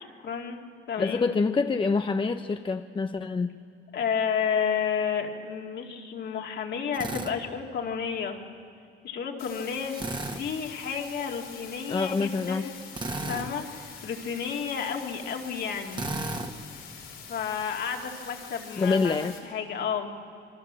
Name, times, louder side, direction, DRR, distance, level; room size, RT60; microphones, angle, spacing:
voice 1, 0.0-1.3 3.9-8.4 9.0-12.7 13.2-16.0 17.3-20.1, left 7 dB, 60° left, 2 dB, 2.5 m, -31 dB
voice 2, 1.0-3.5 11.9-12.6 18.8-19.3, left 4 dB, 25° left, 8 dB, 0.7 m, -26 dB
Drill, 6.9-7.3 9.9-10.4 12.9-13.5 15.9-16.5, right 2 dB, 25° right, 1.7 m, -33 dB
sound 1, 9.4-19.4, left 7 dB, 90° left, 4.5 m, -45 dB
27.0 x 23.5 x 7.6 m, 2.4 s
cardioid pair, 130°, 20 cm